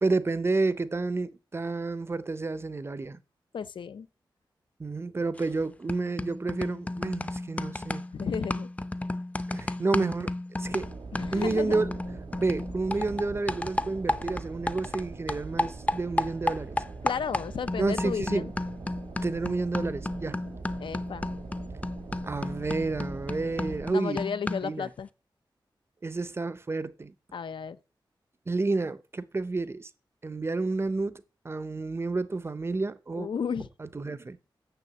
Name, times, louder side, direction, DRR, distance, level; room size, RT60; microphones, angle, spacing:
voice 1, 0.0-3.2 4.8-8.0 9.5-10.3 10.6-10.9 11.3-12.0 12.4-16.8 17.8-18.5 19.2-20.4 22.2-24.2 24.6-24.9 26.0-27.1 28.5-29.9 30.2-33.3 33.8-34.4, right 3 dB, 30° right, 0.6 m, -30 dB
voice 2, 3.5-4.1 8.1-8.7 11.1-11.8 17.0-18.5 20.8-21.3 23.9-25.1 27.3-27.8 33.1-33.7, left 6 dB, 80° left, 0.6 m, -33 dB
sound 1, 5.4-5.6 5.9-15.0 15.3-24.8, left 2 dB, 15° left, 0.5 m, -33 dB
sound 2, 10.7-23.9, right 4 dB, 70° right, 1.2 m, -42 dB
6.7 x 6.6 x 7.4 m
wide cardioid pair, 110°, 8 cm